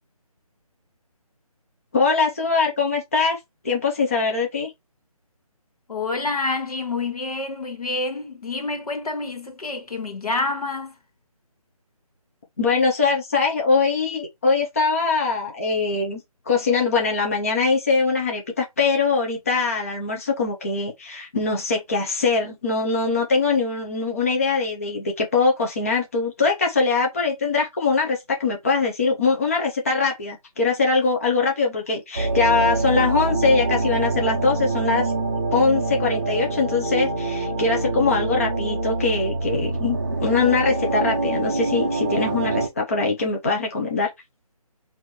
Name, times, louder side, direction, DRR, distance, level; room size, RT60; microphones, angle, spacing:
voice 1, 1.9-3.4 3.6-4.7 12.6-16.2 16.5-35.1 35.5-44.1, left 4 dB, 25° left, 0.7 m, -22 dB
voice 2, 5.9-11.0, left 3 dB, 80° left, 1.4 m, -28 dB
sound 1, 32.1-42.7, right 3 dB, 25° right, 0.5 m, -25 dB
4.7 x 2.7 x 3.2 m
hypercardioid pair, 170°, 19 cm